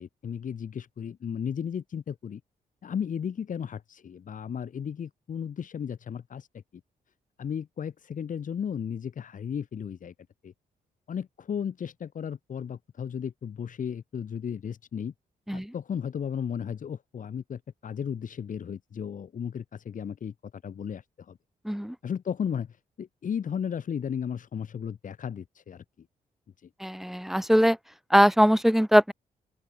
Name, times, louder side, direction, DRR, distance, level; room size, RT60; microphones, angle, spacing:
voice 1, 0.0-2.4 2.8-6.6 7.4-10.1 10.4-10.5 11.1-15.1 15.5-21.4 22.0-25.8, left 7 dB, 60° left, 6.1 m, -34 dB
voice 2, 26.8-27.8 28.1-29.1, equal, ahead, 0.5 m, -21 dB
open air
cardioid pair, 105°, 15 cm